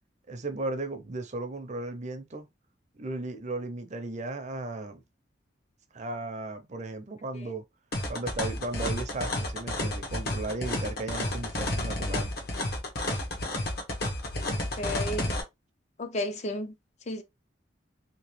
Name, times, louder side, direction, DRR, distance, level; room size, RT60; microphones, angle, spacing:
voice 1, 0.3-2.4 3.0-5.0 5.9-7.6 8.1-12.3, right 2 dB, 40° right, 0.6 m, -35 dB
sound 1, 7.9-15.4, left 1 dB, 55° left, 1.0 m, -31 dB
voice 2, 14.5-15.3 16.0-16.7 17.1-17.2, left 1 dB, 40° left, 0.5 m, -33 dB
3.1 x 3.0 x 3.1 m
head